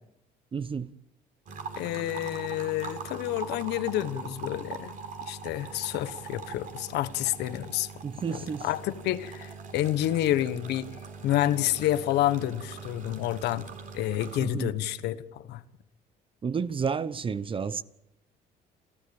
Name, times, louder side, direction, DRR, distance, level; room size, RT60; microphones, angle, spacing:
voice 1, 0.5-0.9 8.0-8.7 14.4-14.7 16.4-17.8, right 6 dB, 30° right, 0.9 m, -31 dB
sound 1, 1.5-14.5, right 5 dB, 50° right, 4.1 m, -42 dB
voice 2, 1.8-4.9 5.3-7.9 8.3-10.9 11.2-13.7 13.9-15.6, left 13 dB, 85° left, 1.3 m, -29 dB
30.0 x 13.0 x 8.8 m
cardioid pair, 110°, 17 cm